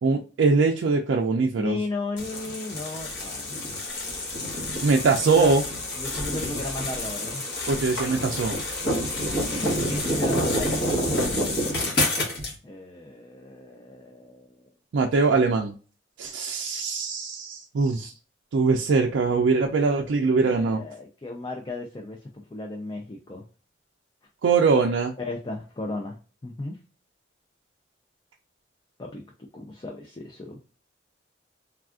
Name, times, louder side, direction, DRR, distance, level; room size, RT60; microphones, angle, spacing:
voice 1, 0.0-1.8 4.8-5.6 7.7-8.6 14.9-15.7 16.2-18.1 18.5-20.8 24.4-25.1, right 4 dB, 80° right, 1 dB, 0.4 m, -22 dB
voice 2, 1.6-3.6 5.3-5.5 6.0-7.4 9.0-9.1 9.5-11.6 12.6-14.6 20.0-20.1 20.4-22.2 22.5-23.4 25.2-26.2 26.4-26.8 29.0-29.2 29.5-30.6, left 2 dB, 25° left, 1 dB, 0.4 m, -35 dB
sound 1, 2.2-12.5, left 1 dB, 60° left, 1.1 m, -28 dB
3.4 x 2.3 x 2.3 m, 0.37 s
head